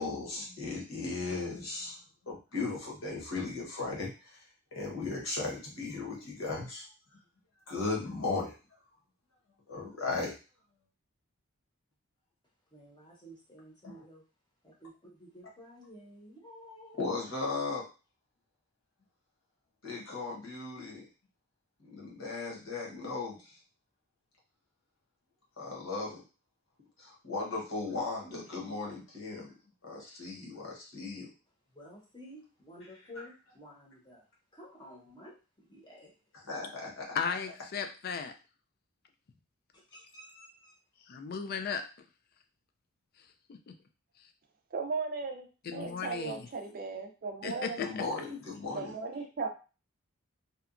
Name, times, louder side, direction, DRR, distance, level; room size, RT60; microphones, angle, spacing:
voice 1, 0.0-4.4 4.7-6.9 7.7-8.5 9.7-10.3 13.8-14.0 17.0-17.9 19.8-21.1 21.8-23.6 25.6-26.2 27.0-29.5 29.8-31.3 36.4-37.1 47.8-48.9, left 3 dB, 65° left, -2 dB, 1.0 m, -36 dB
voice 2, 12.7-14.2 14.6-17.2 31.7-34.2 34.5-35.4 35.7-36.1 39.7-40.7, equal, 20° left, -3 dB, 0.8 m, -52 dB
voice 3, 37.1-38.3 41.1-41.8 43.5-43.7 45.6-46.5 47.4-48.1, left 6 dB, 45° left, 7 dB, 0.3 m, -36 dB
voice 4, 44.7-47.8 48.7-49.5, right 4 dB, 40° right, 5 dB, 0.4 m, -37 dB
2.8 x 2.2 x 2.4 m, 0.32 s
head